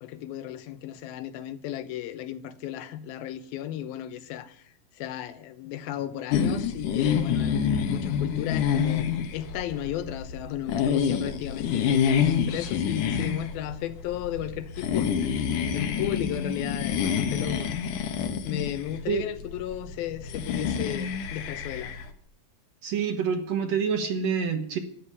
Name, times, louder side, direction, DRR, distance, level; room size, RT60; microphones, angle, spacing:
voice 1, 0.0-17.7 18.5-21.9, left 11 dB, 90° left, 2.8 m, -34 dB
sound 1, 6.3-22.1, left 7 dB, 70° left, 2.5 m, -28 dB
voice 2, 22.8-24.8, right 6 dB, 60° right, 2.1 m, -27 dB
12.5 x 9.7 x 9.9 m
omnidirectional pair, 4.1 m